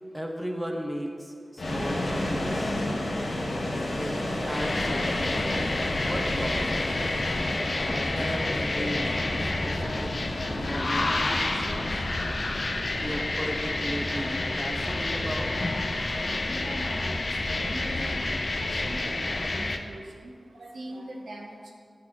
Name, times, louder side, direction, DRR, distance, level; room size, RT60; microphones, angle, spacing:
voice 1, 0.1-2.8 4.0-4.1 4.5-5.3 6.0-6.7 7.8-10.1 10.4-12.0 13.0-15.7, equal, 10° right, 1 dB, 1.0 m, -36 dB
sound 1, 1.6-18.6, left 1 dB, 75° left, 1.5 m, -33 dB
sound 2, 4.5-19.8, left 2 dB, 55° left, 0.7 m, -29 dB
voice 2, 16.6-17.1 17.5-18.2 18.5-21.7, right 1 dB, 80° right, -1 dB, 1.4 m, -42 dB
11.0 x 4.2 x 5.9 m, 2.1 s
wide cardioid pair, 70°, 0 cm